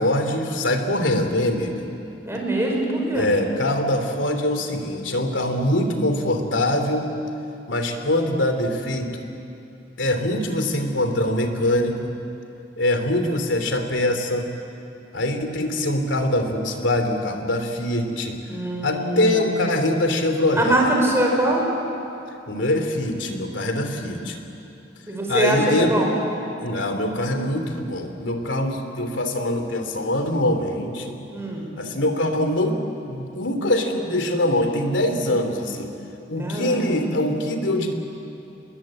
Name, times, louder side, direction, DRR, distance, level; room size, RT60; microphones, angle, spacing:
voice 1, 0.0-1.9 3.1-7.1 7.7-9.1 10.0-12.1 12.8-14.5 15.1-18.4 18.8-20.8 22.5-24.4 25.3-25.9 26.6-31.1 31.8-32.8 33.1-35.9 36.3-37.9, left 1 dB, 80° left, 6 dB, 3.0 m, -23 dB
voice 2, 2.2-3.3 18.5-19.5 20.6-21.6 25.1-26.2 31.3-31.6 36.4-37.0, right 1 dB, 15° right, -1 dB, 5.3 m, -23 dB
29.5 x 21.0 x 8.8 m, 2.8 s
head